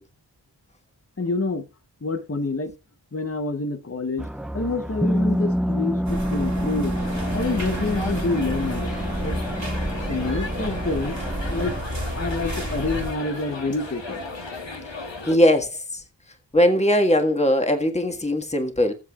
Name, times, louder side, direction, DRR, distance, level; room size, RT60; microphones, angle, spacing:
voice 1, 1.2-1.7 2.0-2.7 3.1-4.3 4.5-7.0 7.3-8.9 9.2-9.4 10.1-11.2 11.5-11.7 12.2-14.2, left 3 dB, 30° left, 1.0 m, -27 dB
sound 1, 4.2-11.8, equal, ahead, 0.5 m, -28 dB
sound 2, 6.1-13.1, right 1 dB, 40° right, 1.9 m, -31 dB
sound 3, 6.9-15.4, left 3 dB, 80° left, 1.7 m, -35 dB
voice 2, 15.3-16.0 16.5-18.9, equal, 15° left, 1.6 m, -20 dB
18.0 x 7.3 x 2.4 m
wide cardioid pair, 50°, 44 cm